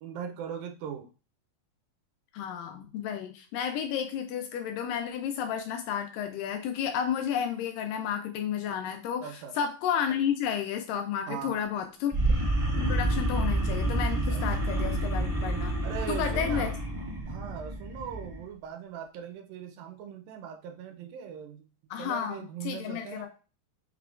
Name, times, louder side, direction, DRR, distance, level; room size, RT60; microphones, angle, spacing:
voice 1, 0.0-1.1 9.2-9.6 11.3-11.7 14.3-14.4 15.8-16.7 17.3-21.7 22.0-23.3, right 8 dB, 80° right, 6 dB, 2.3 m, -40 dB
voice 2, 2.3-9.3 9.6-12.1 12.8-15.7 16.1-16.7 21.9-23.3, left 8 dB, 80° left, 5 dB, 2.1 m, -32 dB
sound 1, 12.1-18.4, right 1 dB, 20° right, 1.1 m, -29 dB
5.7 x 3.5 x 2.4 m, 0.34 s
omnidirectional pair, 4.2 m